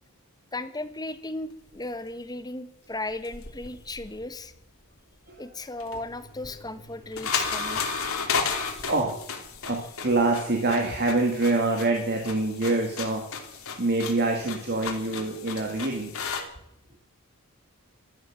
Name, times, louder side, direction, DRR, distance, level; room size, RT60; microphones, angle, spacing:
voice 1, 0.5-4.5 5.4-7.8, left 2 dB, 20° left, 11 dB, 1.2 m, -36 dB
sound 1, 3.1-4.5 5.7-16.4, left 5 dB, 65° left, 3.1 m, -34 dB
voice 2, 8.9-9.2 9.6-13.2 13.8-16.1, right 2 dB, 50° right, 2 dB, 2.5 m, -25 dB
15.0 x 12.5 x 7.5 m, 0.74 s
head